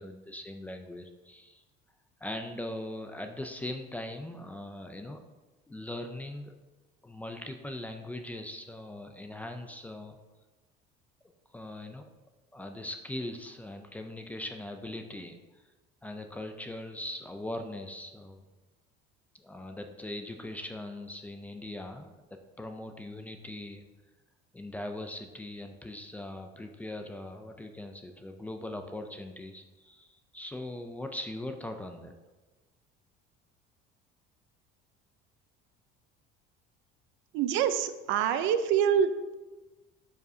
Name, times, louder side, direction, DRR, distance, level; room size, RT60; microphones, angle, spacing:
voice 1, 0.0-1.6 2.2-5.2 5.7-6.5 7.0-10.2 11.5-12.1 12.5-15.4 16.0-18.4 19.4-23.8 24.5-32.1, left 1 dB, 5° left, 5 dB, 0.4 m, -40 dB
voice 2, 37.3-39.3, right 8 dB, 70° right, 11 dB, 0.6 m, -26 dB
12.5 x 4.9 x 2.7 m, 1.2 s
cardioid pair, 165°, 20 cm